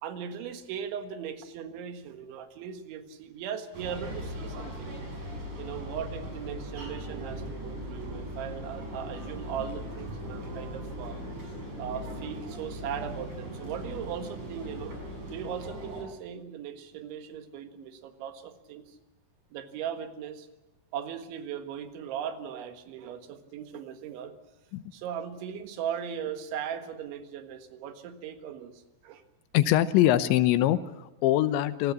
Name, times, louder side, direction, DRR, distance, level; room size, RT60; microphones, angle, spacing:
voice 1, 0.0-4.9 5.6-11.2 11.8-18.8 19.5-20.5 20.9-24.4 24.9-29.2, right 8 dB, 80° right, 8 dB, 4.0 m, -38 dB
sound 1, 3.7-16.0, equal, 45° right, 7.5 m, -39 dB
voice 2, 29.5-31.9, left 13 dB, 80° left, 13 dB, 3.2 m, -23 dB
27.5 x 17.5 x 7.2 m, 1.0 s
omnidirectional pair, 5.3 m